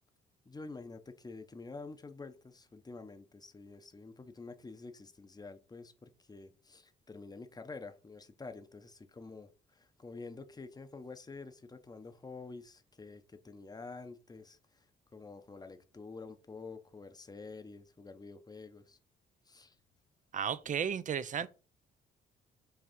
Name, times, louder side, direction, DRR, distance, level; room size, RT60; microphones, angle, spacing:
voice 1, 0.4-14.9 15.1-19.0 19.5-19.8 20.7-20.8 21.4-21.5, left 3 dB, 20° left, 0.8 m, -48 dB
voice 2, 20.3-21.5, right 8 dB, 40° right, 0.5 m, -34 dB
5.7 x 3.3 x 5.1 m
cardioid pair, 90°, 20 cm